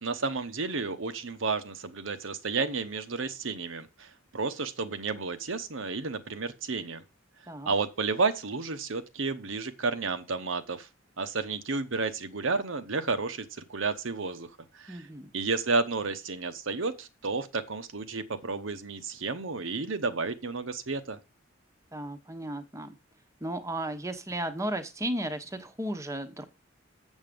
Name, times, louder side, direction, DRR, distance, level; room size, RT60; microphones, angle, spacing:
voice 1, 0.0-7.0 7.7-10.9 11.2-14.5 14.7-15.0 15.3-21.2, right 4 dB, 75° right, 1.0 m, -31 dB
voice 2, 14.9-15.3 21.9-23.0 23.4-26.4, right 1 dB, 15° right, 1.0 m, -34 dB
7.4 x 7.2 x 5.2 m
head